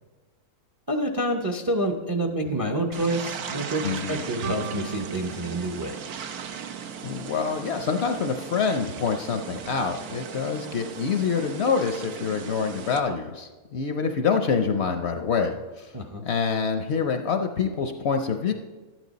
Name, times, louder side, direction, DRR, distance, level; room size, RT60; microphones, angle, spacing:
voice 1, 0.9-6.0 15.9-16.2, right 1 dB, 30° right, 3 dB, 0.4 m, -28 dB
sound 1, 2.9-13.0, right 7 dB, 80° right, 1.2 m, -37 dB
voice 2, 3.8-4.2 7.0-15.9 16.2-18.5, left 5 dB, 60° left, 6 dB, 0.7 m, -26 dB
sound 2, 4.4-7.2, right 5 dB, 55° right, 0.9 m, -39 dB
12.0 x 9.3 x 4.0 m, 1.3 s
omnidirectional pair, 1.6 m